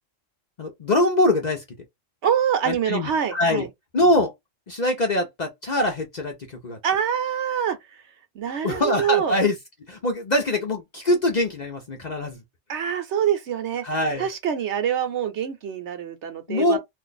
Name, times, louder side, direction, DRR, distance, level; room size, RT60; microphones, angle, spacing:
voice 1, 0.6-1.6 2.6-3.7 3.9-4.3 4.7-6.8 8.6-9.6 9.9-12.4 13.8-14.3 16.5-16.8, left 1 dB, 45° left, 0.6 m, -23 dB
voice 2, 2.2-3.7 6.8-7.8 8.3-9.4 12.7-13.8 14.2-16.8, right 8 dB, 65° right, 1.0 m, -25 dB
2.6 x 2.5 x 3.9 m
omnidirectional pair, 1.3 m